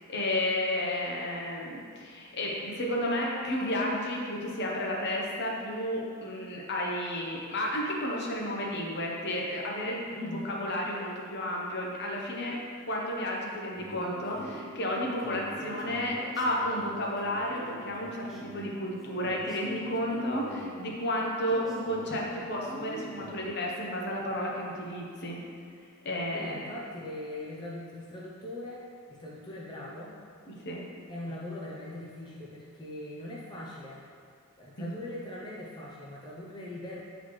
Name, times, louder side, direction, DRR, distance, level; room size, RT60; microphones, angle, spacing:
voice 1, 0.0-12.6 12.9-25.4 26.0-26.7 30.5-30.8 34.8-34.9, left 1 dB, 55° left, -2 dB, 0.9 m, -32 dB
voice 2, 10.1-10.5 26.3-30.1 31.1-34.0 34.6-37.0, left 1 dB, 20° left, -5 dB, 0.6 m, -41 dB
sound 1, 13.8-23.7, equal, ahead, 0.9 m, -44 dB
7.9 x 4.0 x 3.1 m, 2.2 s
head